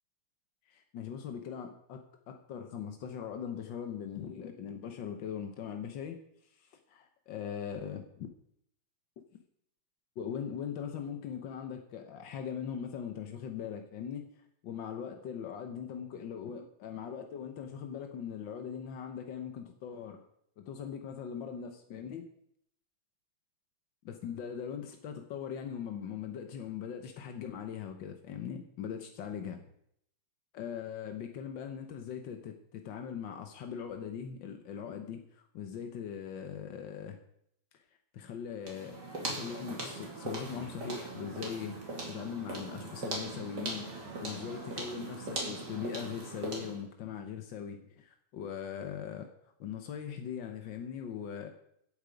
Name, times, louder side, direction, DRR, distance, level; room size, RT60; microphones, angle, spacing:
voice 1, 0.7-6.2 6.5-8.3 10.2-14.3 14.6-20.2 20.6-22.2 24.0-29.6 30.5-37.2 38.1-49.3 49.6-51.5, left 8 dB, 70° left, 5 dB, 1.1 m, -40 dB
sound 1, 38.6-46.8, right 2 dB, 35° right, 2.9 m, -40 dB
16.0 x 8.4 x 5.2 m, 0.73 s
omnidirectional pair, 3.3 m